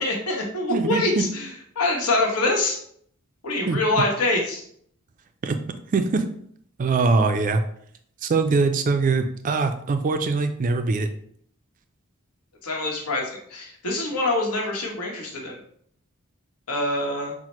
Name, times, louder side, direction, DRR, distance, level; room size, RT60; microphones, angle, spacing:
voice 1, 0.0-2.8 3.4-4.6 12.6-15.6 16.7-17.3, left 2 dB, 85° left, -1 dB, 1.1 m, -25 dB
voice 2, 0.7-1.2 3.7-3.8 5.4-5.6 5.9-6.2 6.8-7.6 8.2-11.1, right 4 dB, 35° right, 7 dB, 0.3 m, -22 dB
5.8 x 2.1 x 3.0 m, 0.64 s
head